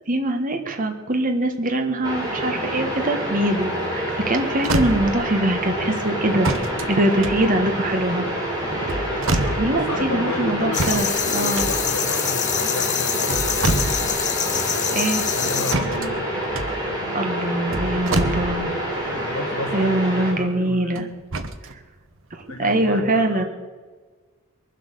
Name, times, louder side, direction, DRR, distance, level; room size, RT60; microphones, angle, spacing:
voice 1, 0.1-6.5 6.9-8.3 9.3-11.7 14.9-15.2 17.1-18.8 19.7-21.1 22.3-23.4, right 1 dB, 40° right, 4 dB, 1.4 m, -23 dB
sound 1, 2.0-20.3, right 1 dB, 20° right, 4.1 m, -27 dB
sound 2, 4.1-4.2 4.5-5.4 6.4-8.0 8.7-9.9 10.7-12.2 13.0-14.3 14.6-14.7 15.7-18.9 20.9-21.7 22.4-22.5, right 2 dB, 60° right, 1.1 m, -27 dB
voice 2, 9.0-14.0 15.3-16.3 19.1-21.1 22.5-23.4, left 2 dB, 85° left, 3 dB, 1.2 m, -33 dB
sound 3, 10.7-15.7, left 9 dB, 35° left, 0.8 m, -25 dB
22.5 x 7.8 x 6.8 m, 1.5 s
head